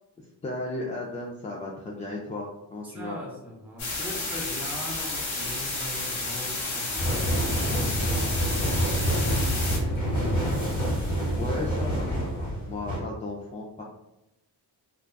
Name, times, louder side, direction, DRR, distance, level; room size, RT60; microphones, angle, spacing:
voice 1, 0.2-3.2 11.3-13.8, left 2 dB, 20° left, -3 dB, 0.3 m, -35 dB
voice 2, 2.8-10.6, left 1 dB, 5° right, -3 dB, 0.7 m, -40 dB
sound 1, 3.8-9.8, left 2 dB, 90° left, 0.8 m, -31 dB
sound 2, 7.0-13.0, equal, 40° left, 1.4 m, -27 dB
2.5 x 2.2 x 2.2 m, 0.89 s
supercardioid pair, 50°, 46 cm